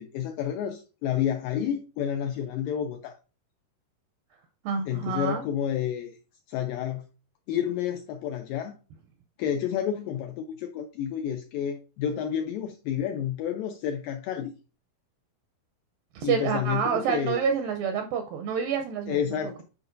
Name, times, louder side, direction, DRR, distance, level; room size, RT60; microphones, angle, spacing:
voice 1, 0.0-3.1 4.9-6.2 6.5-7.1 7.5-8.8 9.4-14.5 16.2-17.4 19.1-19.6, left 9 dB, 85° left, 2.0 m, -30 dB
voice 2, 4.6-5.4 16.2-19.2, right 7 dB, 80° right, 2.1 m, -28 dB
9.9 x 4.7 x 2.5 m
omnidirectional pair, 4.5 m